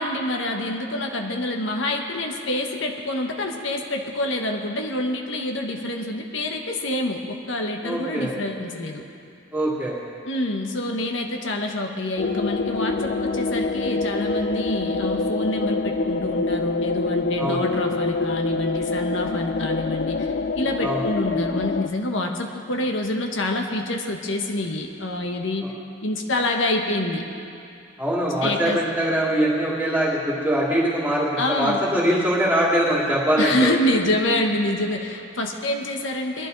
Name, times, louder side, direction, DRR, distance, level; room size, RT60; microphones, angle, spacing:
voice 1, 0.0-9.0 10.3-25.7 26.0-27.3 28.4-28.8 31.4-31.8 33.4-36.5, left 1 dB, 80° left, 3 dB, 1.2 m, -26 dB
voice 2, 7.8-8.3 9.5-9.9 17.4-17.6 20.8-21.0 28.0-33.7, right 1 dB, 10° right, -6 dB, 2.5 m, -22 dB
sound 1, 12.2-21.9, left 3 dB, 55° left, 0.3 m, -25 dB
21.0 x 12.0 x 4.0 m, 2.6 s
head